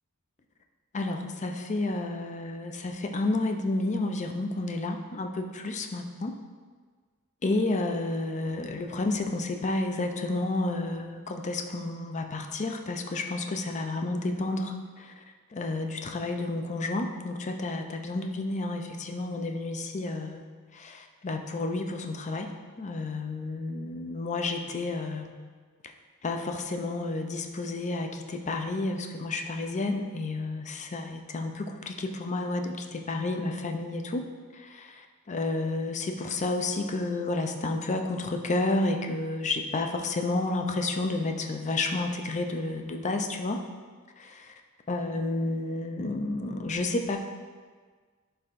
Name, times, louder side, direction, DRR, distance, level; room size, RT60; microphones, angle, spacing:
voice 1, 0.9-6.3 7.4-14.7 15.5-20.4 20.8-22.5 22.8-25.3 26.2-34.2 35.3-43.6 44.9-47.2, left 2 dB, 35° left, 4 dB, 0.5 m, -30 dB
11.0 x 4.7 x 2.6 m, 1.5 s
head